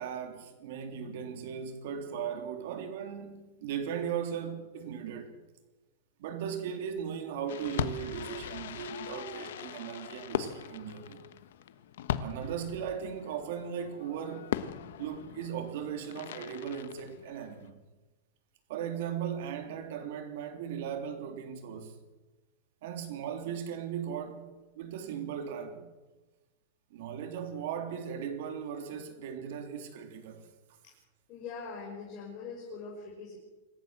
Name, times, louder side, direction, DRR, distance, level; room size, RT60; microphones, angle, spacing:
voice 1, 0.0-5.3 6.2-11.2 12.2-14.5 15.0-17.8 18.7-22.0 22.8-25.9 26.9-30.5, right 8 dB, 60° right, 3.3 m, -37 dB
Fireworks, 7.5-17.7, left 10 dB, 75° left, 1.3 m, -39 dB
voice 2, 31.3-33.4, left 5 dB, 30° left, 5.9 m, -42 dB
26.5 x 14.5 x 7.6 m
supercardioid pair, 165°, 0 cm